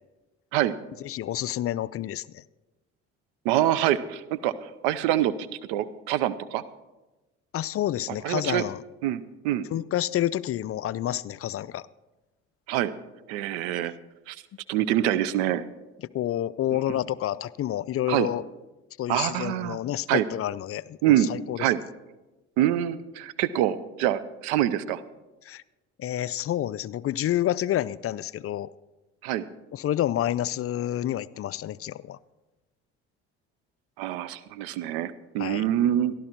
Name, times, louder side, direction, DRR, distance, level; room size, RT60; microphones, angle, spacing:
voice 1, 1.0-2.4 7.5-8.8 9.7-11.9 16.1-18.4 19.0-21.7 25.4-25.6 26.0-28.7 29.7-32.2 35.4-35.6, left 12 dB, 45° left, 18 dB, 0.4 m, -29 dB
voice 2, 3.4-5.3 5.7-6.6 8.2-8.6 9.0-9.7 12.7-12.9 13.3-13.9 14.3-14.4 14.7-15.6 18.1-18.3 19.1-19.8 20.1-20.2 21.0-21.3 21.6-21.8 22.6-25.0 29.2-29.5 34.0-36.1, right 12 dB, 85° right, 16 dB, 0.7 m, -25 dB
13.5 x 12.0 x 4.5 m, 1.1 s
hypercardioid pair, 60°, 32 cm